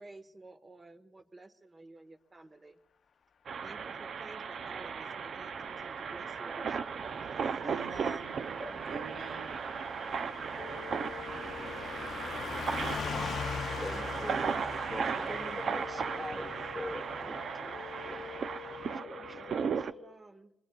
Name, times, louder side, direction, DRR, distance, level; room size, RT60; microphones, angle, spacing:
voice 1, 0.0-2.8 3.6-7.0 7.4-7.5 19.3-20.5, right 2 dB, 25° right, 1.3 m, -52 dB
sound 1, 3.5-19.9, right 6 dB, 55° right, 0.5 m, -36 dB
Car passing by / Truck, 5.9-18.9, left 6 dB, 55° left, 0.4 m, -43 dB
voice 2, 7.4-8.4 8.9-9.8, right 3 dB, 70° right, 1.5 m, -48 dB
sound 2, 10.6-20.1, left 10 dB, 85° left, 0.7 m, -48 dB
voice 3, 13.8-18.3 18.9-19.5, left 1 dB, 5° left, 1.6 m, -44 dB
27.5 x 21.0 x 2.3 m
cardioid pair, 90°, 0 cm